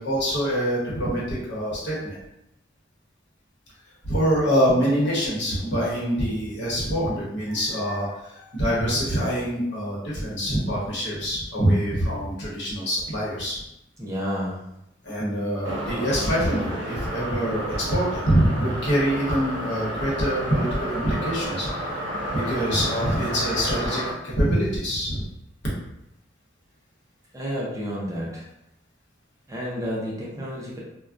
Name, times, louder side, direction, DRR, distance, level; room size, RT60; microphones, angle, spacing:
voice 1, 0.0-2.2 4.0-13.6 15.0-22.0 22.3-25.2, equal, 65° left, -6 dB, 0.9 m, -25 dB
voice 2, 14.0-14.6 27.3-28.5 29.5-30.8, equal, 15° right, -5 dB, 0.5 m, -30 dB
sound 1, 15.6-24.1, equal, 75° right, 0.7 m, -31 dB
2.5 x 2.1 x 2.3 m, 0.85 s
head